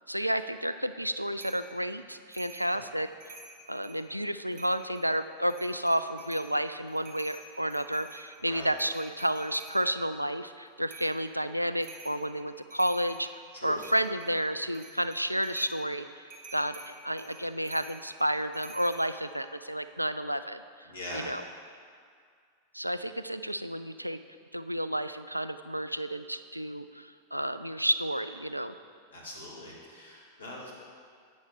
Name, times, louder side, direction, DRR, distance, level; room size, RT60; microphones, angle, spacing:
voice 1, 0.1-3.3 3.7-13.3 13.6-16.2 16.5-21.4 22.7-24.2 24.5-28.7, equal, 90° right, 11 dB, 0.3 m, -31 dB
sound 1, 1.4-1.7 2.3-2.7 3.1-4.0 4.5-5.0 5.4-6.5 6.9-9.8 10.9-11.2 11.8-12.2 12.6-13.3 13.8-14.3 14.7-15.8 16.3-19.0, right 3 dB, 40° right, 1.7 m, -49 dB
voice 2, 8.4-8.7 13.5-13.8 20.9-21.3 29.1-30.7, left 1 dB, 75° left, -4 dB, 2.1 m, -42 dB
10.5 x 8.9 x 3.5 m, 2.1 s
figure-of-eight pair, 90°, 0 cm